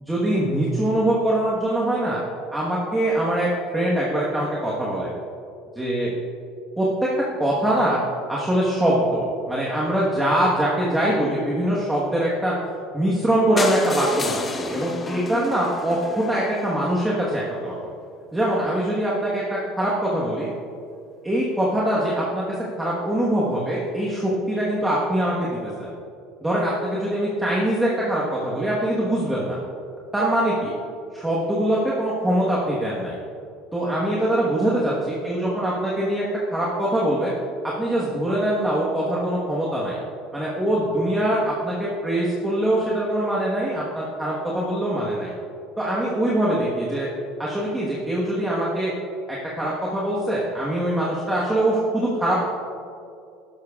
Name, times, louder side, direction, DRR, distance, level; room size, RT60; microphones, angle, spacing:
voice 1, 0.1-2.2 2.5-5.1 5.7-6.1 6.8-6.9 7.4-8.0 8.3-12.5 12.9-17.9 18.3-20.5 21.2-25.9 26.4-29.6 30.1-30.7 31.1-33.2 33.7-36.2 36.5-37.3 37.8-40.0 40.3-45.3 45.8-47.1 47.4-48.9 49.3-52.5, right 1 dB, 10° right, -6 dB, 1.3 m, -23 dB
sound 1, 13.6-17.5 18.1-18.2 18.4-18.5 18.8-18.9 19.1-19.2, left 3 dB, 20° left, 0.8 m, -31 dB
12.0 x 12.0 x 2.4 m, 2.5 s
cardioid pair, 140°, 0 cm